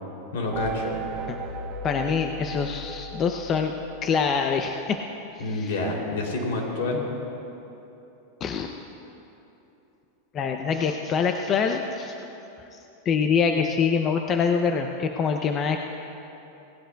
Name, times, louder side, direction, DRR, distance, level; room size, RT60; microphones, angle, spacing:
voice 1, 0.3-0.9 5.4-7.0, left 2 dB, 75° left, -1 dB, 2.9 m, -28 dB
sound 1, 0.5-4.3, right 2 dB, 30° right, 0.7 m, -36 dB
voice 2, 1.8-3.7 4.0-5.0 5.5-5.7 8.4-8.7 10.3-12.2 13.1-15.8, left 6 dB, 30° left, 5 dB, 0.5 m, -25 dB
18.0 x 16.5 x 2.3 m, 3.0 s
supercardioid pair, 140°, 0 cm